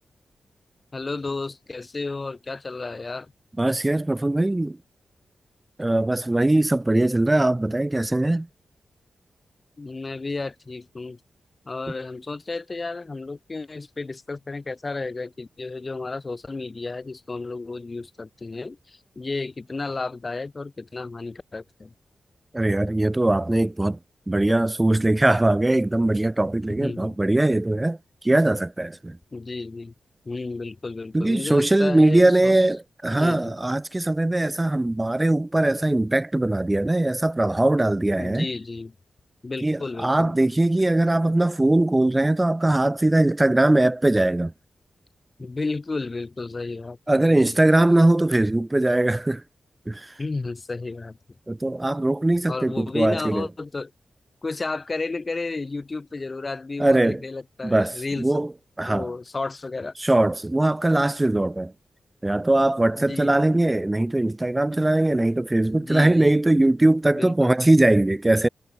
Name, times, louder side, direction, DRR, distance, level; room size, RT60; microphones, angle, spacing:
voice 1, 0.9-3.3 9.8-11.2 11.7-21.9 26.8-27.2 29.3-29.9 30.2-32.6 33.1-33.6 38.2-38.9 39.4-40.3 45.4-47.6 50.2-51.2 52.5-53.9 54.4-58.4 58.9-59.9 63.1-63.5 65.7-66.3 67.1-67.6, left 3 dB, 40° left, 2.7 m, -32 dB
voice 2, 3.6-4.8 5.8-8.5 22.5-24.0 24.3-28.0 28.2-29.2 31.1-38.5 39.6-44.5 47.1-49.4 49.9-50.1 51.5-53.5 56.8-57.2 57.6-58.5 58.8-59.1 60.0-61.7 62.2-68.5, right 1 dB, 20° right, 0.7 m, -21 dB
supercardioid pair, 45°, 0 cm